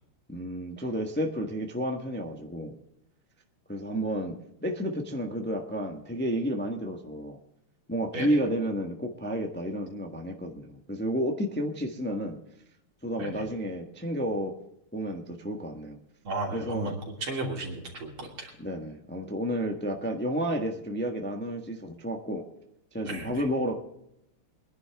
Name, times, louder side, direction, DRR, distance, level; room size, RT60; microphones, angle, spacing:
voice 1, 0.3-2.7 3.7-4.3 4.6-7.4 7.9-12.4 13.0-14.5 14.9-16.0 16.5-16.9 18.6-22.4 22.9-23.8, equal, 5° left, 3 dB, 1.0 m, -31 dB
voice 2, 16.2-18.5 23.0-23.4, right 2 dB, 70° right, -1 dB, 3.9 m, -34 dB
24.0 x 11.0 x 3.5 m, 0.78 s
omnidirectional pair, 2.4 m